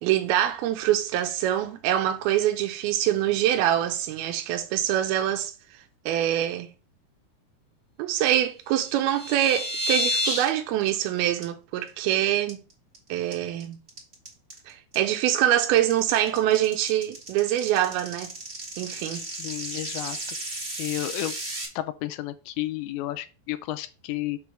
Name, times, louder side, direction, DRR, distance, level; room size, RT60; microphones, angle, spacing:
voice 1, 0.0-5.5 6.1-6.7 8.0-12.6 13.1-13.8 14.7-18.3 18.8-19.2, right 12 dB, 75° right, 2.6 m, -24 dB
sound 1, 8.8-10.5 10.8-11.1 11.4-11.5 11.9-12.1 12.5-13.0 13.3-21.7, equal, 30° right, 1.3 m, -32 dB
voice 2, 19.1-20.2 20.8-21.4 21.8-24.4, left 15 dB, 80° left, 2.4 m, -32 dB
6.2 x 3.4 x 5.9 m
omnidirectional pair, 4.6 m